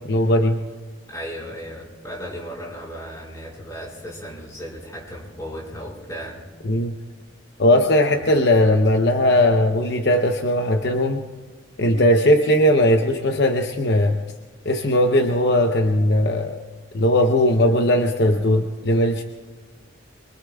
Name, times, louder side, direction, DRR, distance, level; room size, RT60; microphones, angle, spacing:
voice 1, 0.1-0.6 6.6-7.0 7.6-11.2 11.8-14.2 14.6-16.6 16.9-19.2, left 1 dB, 60° left, 4 dB, 0.8 m, -18 dB
voice 2, 1.1-6.4 8.1-8.3, equal, 20° left, -4 dB, 4.4 m, -35 dB
26.5 x 23.5 x 2.3 m, 1.4 s
head